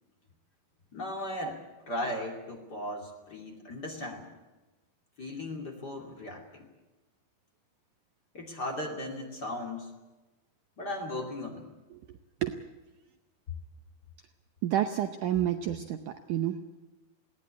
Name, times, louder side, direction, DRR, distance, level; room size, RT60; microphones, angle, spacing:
voice 1, 0.9-4.3 5.2-6.7 8.3-9.9 10.8-11.7, left 1 dB, 30° left, 1 dB, 2.7 m, -37 dB
voice 2, 14.6-16.6, right 11 dB, 70° right, 7 dB, 2.0 m, -29 dB
20.5 x 17.5 x 9.6 m, 1.1 s
omnidirectional pair, 4.3 m